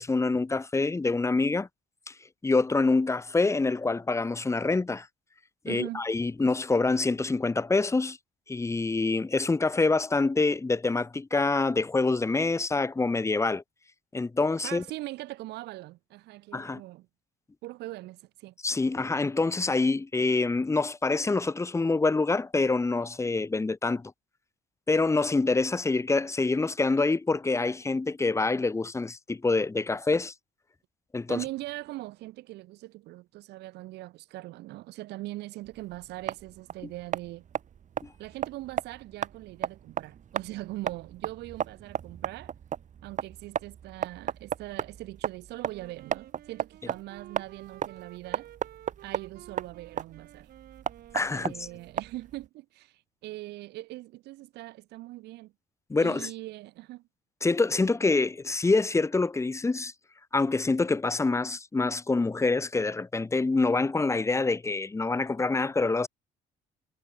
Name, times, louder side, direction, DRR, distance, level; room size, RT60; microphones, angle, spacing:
voice 1, 0.0-1.7 2.1-2.2 2.4-5.1 5.6-8.2 8.5-13.6 14.1-14.8 16.5-16.8 18.6-24.1 24.9-30.3 31.1-31.4 38.0-38.1 51.1-51.7 55.9-56.3 57.4-59.9 60.3-66.1, left 3 dB, 15° left, 1.7 m, -26 dB
voice 2, 5.7-6.0 14.6-17.1 17.6-18.5 31.3-37.5 38.2-42.5 43.0-48.5 49.0-50.5 51.3-55.5 56.0-57.0, right 18 dB, 80° right, 1.2 m, -41 dB
sound 1, 35.7-52.5, right 8 dB, 45° right, 3.5 m, -35 dB
Wind instrument woodwind instrument, 45.6-52.3, right 13 dB, 65° right, 2.7 m, -52 dB
cardioid pair, 110°, 17 cm